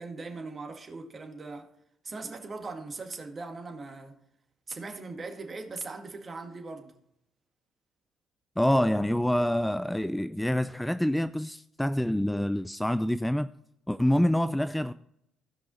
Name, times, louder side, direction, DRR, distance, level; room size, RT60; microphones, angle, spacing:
voice 1, 0.0-1.7 2.0-4.2 4.7-7.0, right 3 dB, 35° right, 1.9 m, -40 dB
voice 2, 8.6-13.5 13.9-14.9, left 1 dB, 5° left, 0.4 m, -26 dB
16.0 x 5.5 x 4.1 m
hypercardioid pair, 50°, 0 cm